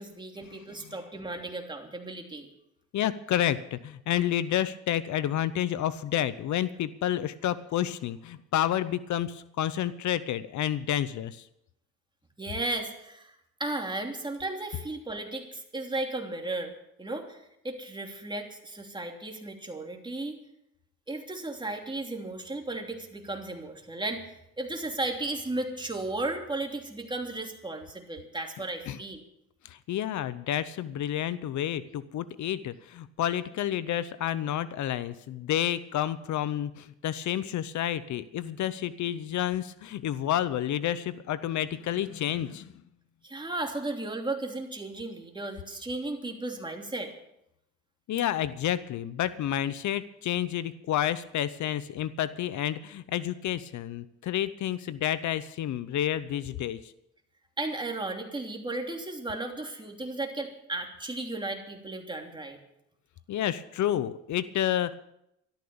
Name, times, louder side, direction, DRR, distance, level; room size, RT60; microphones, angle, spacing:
voice 1, 0.0-2.5 12.4-13.3 13.6-16.7 17.0-20.3 21.1-29.2 43.2-47.1 57.6-62.6, right 2 dB, 15° right, 2 dB, 3.0 m, -35 dB
voice 2, 2.9-11.4 28.9-29.0 29.6-42.7 48.1-56.9 63.3-64.9, left 11 dB, 70° left, 15 dB, 0.8 m, -30 dB
13.5 x 12.5 x 7.0 m, 0.80 s
cardioid pair, 90°, 30 cm